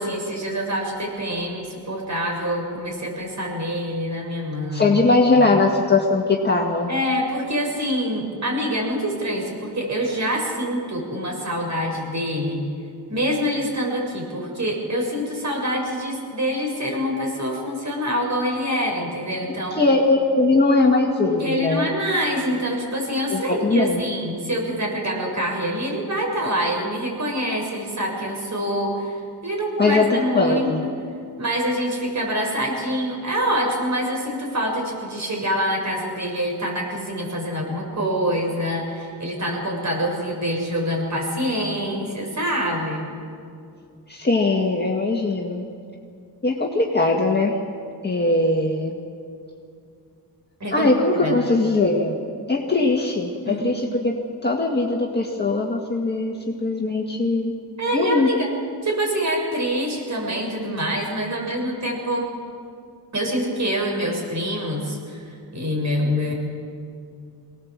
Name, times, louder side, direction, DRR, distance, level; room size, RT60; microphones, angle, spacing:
voice 1, 0.0-4.9 5.4-5.6 6.9-12.7 13.1-19.8 21.4-29.2 29.4-30.9 31.4-43.1 50.6-50.9 51.2-51.4 53.4-53.6 57.8-58.5 58.8-62.3 63.1-66.3, equal, 45° right, 0 dB, 6.6 m, -25 dB
voice 2, 4.7-6.9 19.7-21.9 23.3-24.0 29.8-30.8 44.1-45.7 46.4-47.6 48.0-48.9 50.7-52.1 52.5-54.1 54.4-57.5 57.9-58.4, left 3 dB, 25° left, 0 dB, 1.9 m, -20 dB
24.0 x 19.0 x 7.5 m, 2.4 s
cardioid pair, 100°, 40 cm